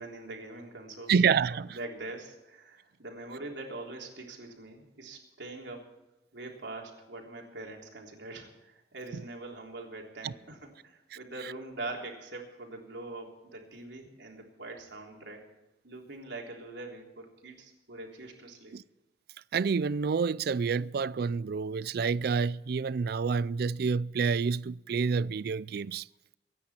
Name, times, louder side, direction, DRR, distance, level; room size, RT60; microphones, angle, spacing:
voice 1, 0.0-1.1 1.5-5.9 6.3-15.4 15.8-18.8, right 2 dB, 90° right, 3.6 m, -43 dB
voice 2, 1.1-1.8 10.2-10.3 18.7-18.8 19.5-26.0, right 5 dB, 60° right, 0.4 m, -28 dB
24.0 x 10.0 x 4.4 m
head